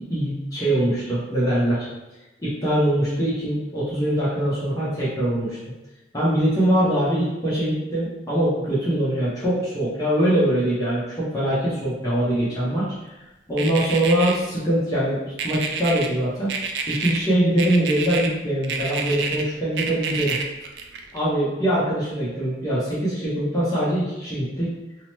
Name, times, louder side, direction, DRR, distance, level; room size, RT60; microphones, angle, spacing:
voice 1, 0.1-1.9 2.4-5.6 6.1-13.1 13.5-16.5 16.9-20.4 21.1-24.7, right 1 dB, 20° left, -9 dB, 0.6 m, -23 dB
sound 1, 13.6-14.3 15.4-16.1 16.5-17.3 17.6-18.3 18.6-19.4 19.8-21.2, right 5 dB, 70° right, 0.3 m, -28 dB
2.8 x 2.0 x 2.9 m, 1.0 s
head